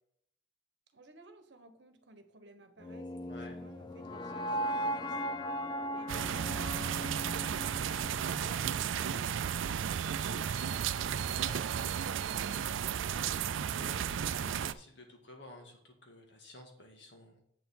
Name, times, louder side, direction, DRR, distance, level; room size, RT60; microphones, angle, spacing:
voice 1, 0.9-7.9, right 1 dB, 65° right, 8 dB, 1.1 m, -57 dB
sound 1, 2.8-8.9, equal, 25° left, 0.5 m, -38 dB
sound 2, 6.1-14.7, right 8 dB, 80° right, 0.4 m, -34 dB
voice 2, 8.2-8.5 11.3-11.6 13.7-17.4, left 1 dB, 65° left, 2 dB, 2.0 m, -53 dB
7.7 x 7.1 x 3.8 m, 0.72 s
head